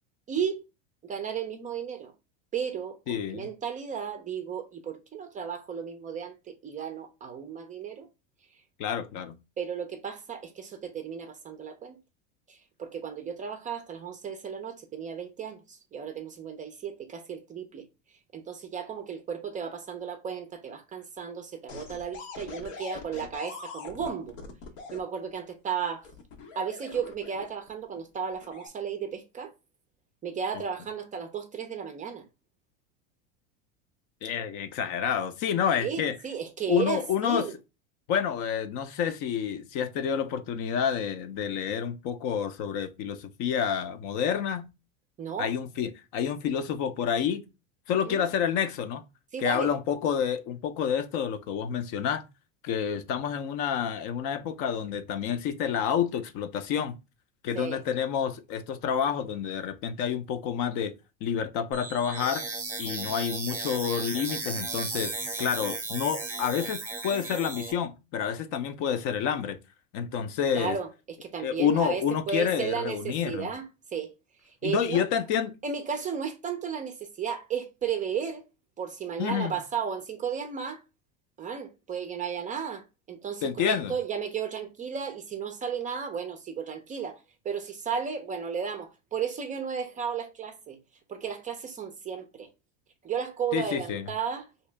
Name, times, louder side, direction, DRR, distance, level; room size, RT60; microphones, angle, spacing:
voice 1, 0.3-0.6 1.0-2.1 2.5-8.1 9.6-12.0 12.5-17.9 18.3-24.4 24.9-26.1 26.5-29.5 30.2-32.2 35.8-37.5 45.2-45.5 48.1-48.3 49.3-49.7 57.5-57.8 70.5-74.1 74.4-75.0 75.6-78.4 78.8-80.8 81.4-90.8 91.1-92.5 93.0-94.5, right 7 dB, 20° right, 0.4 m, -34 dB
voice 2, 3.1-3.5 8.8-9.4 34.2-36.1 36.7-37.5 38.1-44.7 45.4-47.4 47.9-49.0 49.4-52.2 52.6-57.0 57.4-60.9 61.2-62.4 62.8-69.6 69.9-70.8 71.4-73.5 74.6-75.5 79.2-79.6 83.4-84.0 93.5-94.1, left 8 dB, 55° left, 0.5 m, -29 dB
sound 1, 21.7-25.0 26.0-27.7 28.3-28.7, left 5 dB, 90° left, 1.0 m, -43 dB
sound 2, 61.7-67.7, right 3 dB, 5° right, 0.8 m, -35 dB
2.9 x 2.8 x 3.2 m
supercardioid pair, 120°, 37 cm